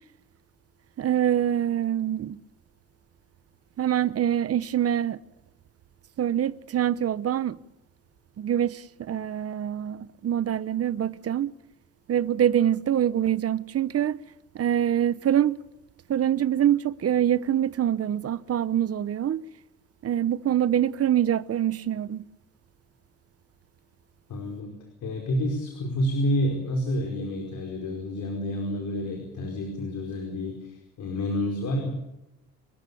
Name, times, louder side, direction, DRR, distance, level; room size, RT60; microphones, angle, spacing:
voice 1, 1.0-2.4 3.8-5.2 6.2-7.6 8.4-11.5 12.1-14.2 14.5-15.5 16.1-19.4 20.0-22.3, right 10 dB, 50° right, 0.9 m, -25 dB
voice 2, 24.3-24.7 25.0-31.9, left 1 dB, 75° left, 5.0 m, -29 dB
28.0 x 14.0 x 8.5 m
cardioid pair, 90°, 30 cm